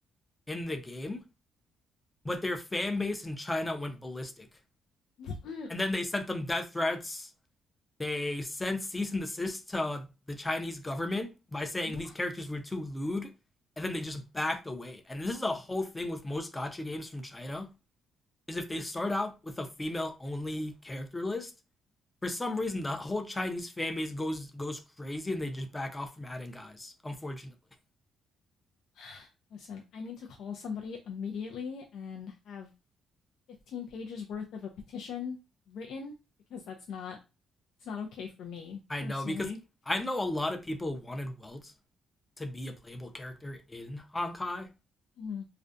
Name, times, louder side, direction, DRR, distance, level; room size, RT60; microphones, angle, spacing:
voice 1, 0.5-1.2 2.2-4.5 5.7-7.3 8.0-13.3 13.8-17.7 18.5-21.5 22.2-27.5 38.9-39.5 39.9-41.7 42.4-44.7, left 2 dB, 15° left, 0.5 m, -34 dB
voice 2, 5.2-5.7 11.9-12.1 28.9-32.7 33.7-35.4 35.7-36.1 36.5-37.2 37.8-39.6 45.2-45.5, left 6 dB, 75° left, 0.4 m, -40 dB
2.4 x 2.1 x 2.5 m
cardioid pair, 90°, 0 cm